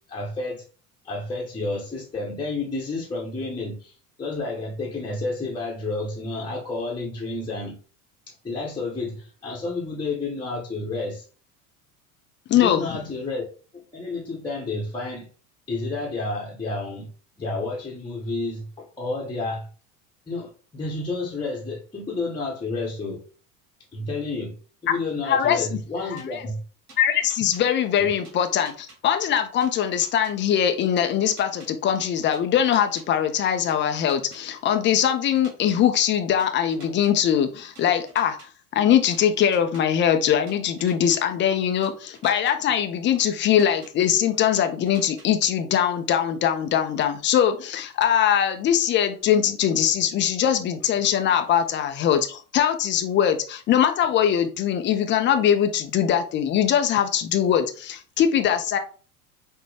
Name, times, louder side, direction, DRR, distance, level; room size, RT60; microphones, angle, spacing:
voice 1, 0.1-0.6 1.0-7.8 8.3-11.2 12.5-13.5 13.7-15.3 15.7-17.1 17.4-19.7 20.3-23.2 23.9-24.6 24.8-26.6 28.0-28.1, left 3 dB, 10° left, -5 dB, 1.0 m, -30 dB
voice 2, 12.5-13.1 25.2-26.4 27.0-38.4 38.7-58.8, left 9 dB, 25° left, 6 dB, 0.5 m, -22 dB
sound 1, 26.2-26.3 26.9-27.6 28.2-29.0 29.6-30.3 31.0-31.7 32.3-33.0 33.7-34.4 35.0-35.8 36.4-37.1 37.8-38.5 39.1-39.8 40.5-41.2 41.8-42.5 43.2-43.9 44.5-45.3, right 3 dB, 35° right, 1.9 m, -48 dB
5.9 x 2.1 x 3.3 m, 0.38 s
figure-of-eight pair, 75°, 45 cm